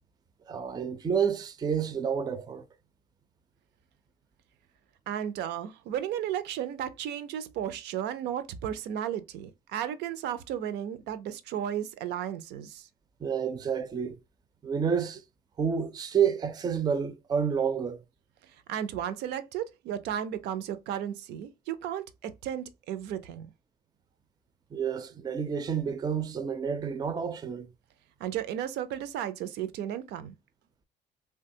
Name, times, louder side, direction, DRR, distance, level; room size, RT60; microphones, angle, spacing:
voice 1, 0.5-2.7 13.2-14.2 14.6-15.2 15.6-18.0 24.7-27.7, right 7 dB, 25° right, 0.4 m, -29 dB
voice 2, 5.1-12.9 18.4-23.5 28.2-30.3, right 10 dB, 80° right, 0.5 m, -34 dB
3.2 x 2.2 x 2.7 m
cardioid pair, 110°, 17 cm